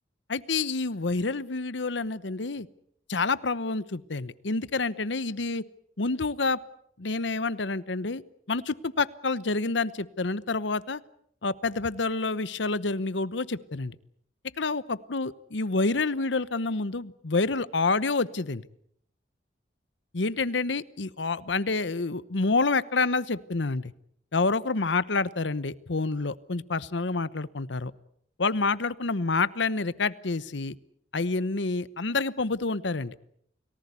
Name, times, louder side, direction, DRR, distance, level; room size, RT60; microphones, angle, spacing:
voice 1, 0.3-2.7 3.1-5.6 6.0-6.6 7.0-8.2 8.5-11.0 11.4-14.0 14.6-18.7 20.1-23.9 24.3-27.9 28.4-30.8 31.1-33.1, left 3 dB, 75° left, 17 dB, 1.0 m, -28 dB
29.5 x 19.0 x 8.3 m, 0.71 s
head